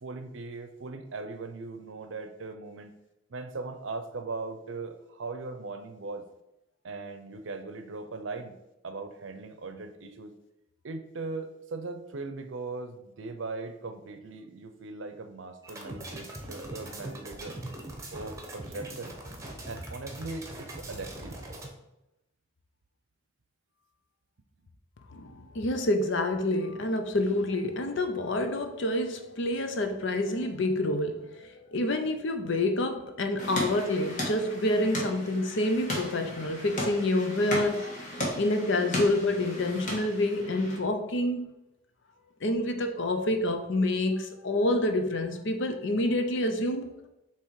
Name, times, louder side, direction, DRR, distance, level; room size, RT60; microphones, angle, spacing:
voice 1, 0.0-2.9 3.3-6.3 6.8-8.6 8.8-10.3 10.8-17.6 18.1-19.1 19.7-21.4, right 3 dB, 65° right, 9 dB, 0.6 m, -39 dB
sound 1, 15.6-21.7, right 1 dB, 15° right, 1.0 m, -41 dB
voice 2, 25.1-37.9 38.4-41.5 42.4-46.9, left 1 dB, 65° left, 6 dB, 0.7 m, -28 dB
sound 2, 33.4-40.8, left 1 dB, 40° left, 1.6 m, -36 dB
7.0 x 3.0 x 4.7 m, 0.90 s
head